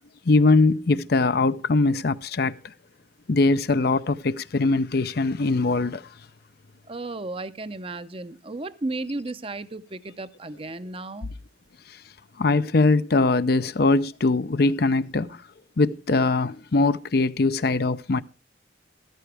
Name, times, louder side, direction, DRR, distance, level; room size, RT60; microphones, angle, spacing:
voice 1, 0.3-2.5 3.3-6.0 12.4-15.4 15.8-18.2, left 3 dB, 55° left, 0.6 m, -21 dB
voice 2, 6.9-11.3, right 2 dB, 30° right, 0.7 m, -34 dB
13.5 x 13.5 x 3.4 m
head